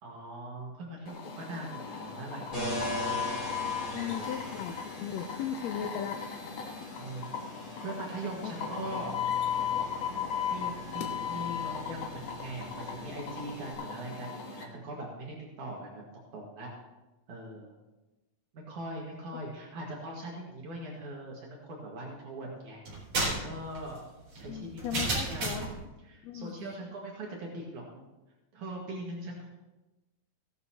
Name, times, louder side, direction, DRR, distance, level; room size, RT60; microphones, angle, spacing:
voice 1, 0.0-3.2 3.8-4.3 7.0-7.3 7.8-9.2 10.1-16.0 16.3-16.7 17.3-17.7 18.5-22.8 23.2-24.1 24.3-24.8 25.1-25.7 26.0-28.0 28.5-29.5, right 1 dB, 65° right, -3 dB, 3.1 m, -41 dB
sound 1, 1.1-14.6, left 7 dB, 60° left, 2.2 m, -36 dB
sound 2, 2.5-13.7, equal, 25° left, 3.5 m, -42 dB
voice 2, 3.9-6.2 8.4-8.5 24.5-25.6 26.2-26.7, left 9 dB, 90° left, 7 dB, 1.5 m, -37 dB
sound 3, 22.8-25.8, right 2 dB, 50° right, 4.7 m, -32 dB
16.0 x 12.0 x 2.9 m, 1.1 s
omnidirectional pair, 3.8 m